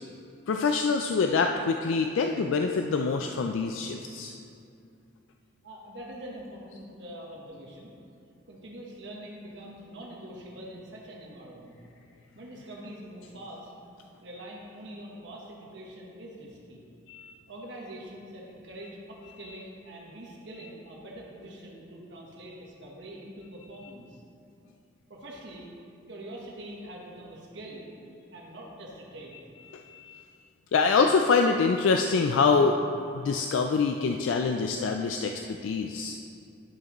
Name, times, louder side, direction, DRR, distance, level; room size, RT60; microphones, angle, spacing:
voice 1, 0.5-4.3 17.1-17.3 29.7-30.2 30.7-32.8 33.1-36.2, left 4 dB, 75° left, 4 dB, 0.3 m, -25 dB
voice 2, 5.6-7.9 8.5-11.7 12.3-13.7 14.2-16.9 17.5-24.2 25.1-25.7 26.1-27.9 28.3-29.4, right 1 dB, 60° right, -3 dB, 1.1 m, -44 dB
11.0 x 6.5 x 3.0 m, 2.5 s
head